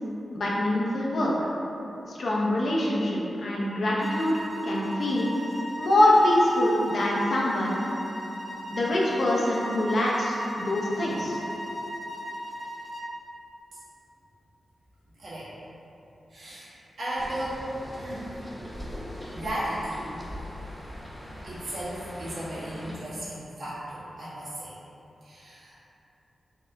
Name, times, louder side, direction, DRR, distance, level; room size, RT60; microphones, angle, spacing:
voice 1, 0.3-1.3 2.1-4.3 4.6-5.3 5.8-7.8 8.7-11.4, left 1 dB, 65° left, -4 dB, 0.7 m, -24 dB
sound 1, 4.0-13.1, equal, 30° left, 0.5 m, -37 dB
voice 2, 15.2-15.5 16.3-17.7 18.0-18.3 19.3-20.2 21.4-24.8 25.2-25.8, right 1 dB, 75° right, -10 dB, 1.4 m, -35 dB
sound 2, 17.2-23.0, equal, ahead, 0.8 m, -41 dB
4.8 x 2.2 x 3.5 m, 3.0 s
cardioid pair, 70°, 0 cm